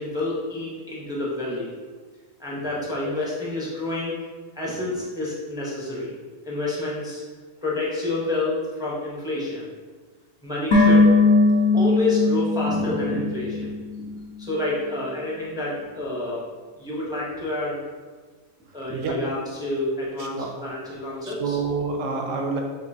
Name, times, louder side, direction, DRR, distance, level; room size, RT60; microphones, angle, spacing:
voice 1, 0.0-1.8 2.4-4.2 4.6-6.2 6.5-7.2 7.6-9.7 10.4-11.1 11.7-13.7 14.4-16.4 16.8-17.8 18.7-21.6, left 2 dB, 5° right, -6 dB, 0.6 m, -28 dB
sound 1, 10.7-14.0 14.3-14.4, left 3 dB, 55° left, 1.2 m, -19 dB
voice 2, 20.2-20.5 21.2-22.6, right 4 dB, 70° right, 2 dB, 1.0 m, -28 dB
6.6 x 2.7 x 2.7 m, 1.4 s
omnidirectional pair, 1.5 m